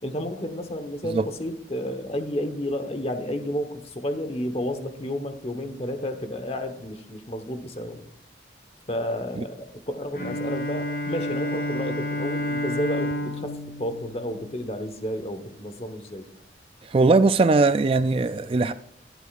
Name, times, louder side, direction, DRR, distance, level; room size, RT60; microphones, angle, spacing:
voice 1, 0.0-8.0 8.9-16.3, equal, 35° left, 1.1 m, -31 dB
Bowed string instrument, 10.1-15.0, left 1 dB, 55° left, 4.4 m, -30 dB
voice 2, 16.8-18.7, right 3 dB, 30° right, 0.3 m, -20 dB
21.0 x 8.1 x 2.5 m
head